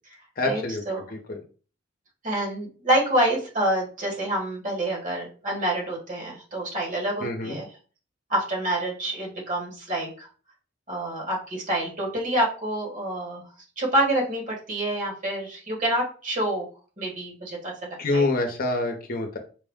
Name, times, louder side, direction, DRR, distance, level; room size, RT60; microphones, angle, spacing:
voice 1, 0.4-0.8 1.1-1.4 7.2-7.6 18.0-19.4, left 2 dB, 50° left, 4 dB, 0.8 m, -26 dB
voice 2, 2.2-7.7 8.3-10.3 10.9-13.4 13.8-16.7 17.0-18.3, right 1 dB, 45° right, -2 dB, 1.6 m, -27 dB
4.7 x 2.2 x 3.6 m, 0.38 s
head